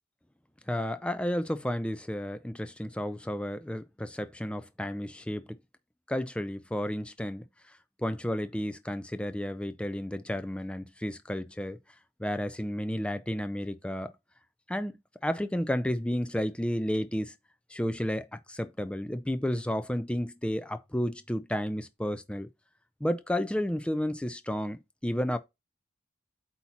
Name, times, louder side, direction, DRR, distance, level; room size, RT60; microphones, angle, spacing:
voice 1, 0.7-5.6 6.1-7.4 8.0-11.8 12.2-14.1 14.7-15.0 15.2-17.3 17.7-22.5 23.0-25.4, equal, 5° left, 0.4 m, -32 dB
8.2 x 2.8 x 5.8 m
head